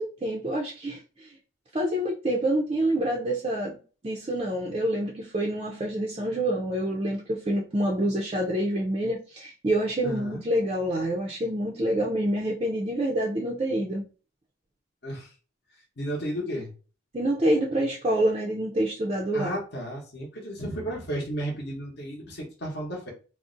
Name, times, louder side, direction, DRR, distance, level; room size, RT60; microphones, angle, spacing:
voice 1, 0.0-1.3 1.7-14.1 17.1-19.6, right 1 dB, 25° right, -2 dB, 0.4 m, -27 dB
voice 2, 10.0-10.4 15.0-15.3 16.0-16.7 19.3-23.1, right 1 dB, 55° left, -2 dB, 0.8 m, -33 dB
2.5 x 2.0 x 3.7 m, 0.37 s
head